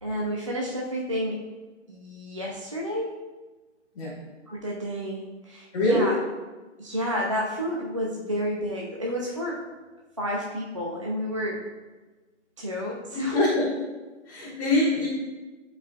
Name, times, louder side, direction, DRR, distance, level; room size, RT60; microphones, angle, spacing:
voice 1, 0.0-1.4 1.9-3.1 4.5-6.2 6.8-9.6 10.2-11.6 12.6-13.4 14.8-15.0, equal, 30° right, -3 dB, 0.4 m, -30 dB
voice 2, 5.7-6.1 13.1-13.7 14.3-15.1, left 1 dB, 30° left, -8 dB, 1.3 m, -23 dB
10.0 x 4.6 x 2.3 m, 1.2 s
hypercardioid pair, 165°, 36 cm